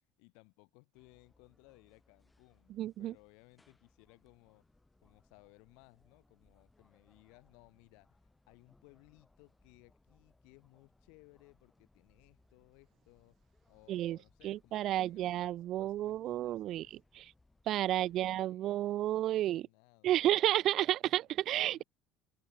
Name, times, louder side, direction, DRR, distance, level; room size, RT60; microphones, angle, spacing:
voice 1, 0.2-4.7 5.0-13.4 13.7-16.9 17.9-20.6 21.0-21.2 21.7-21.8, left 36 dB, 70° left, 5.4 m, -63 dB
sound 1, 0.9-18.4, left 2 dB, 15° left, 7.8 m, -70 dB
voice 2, 2.7-3.1 13.9-14.2 14.4-16.9 17.2-17.3 17.7-19.7 20.0-21.8, right 13 dB, 55° right, 0.4 m, -31 dB
hypercardioid pair, 60°, 0 cm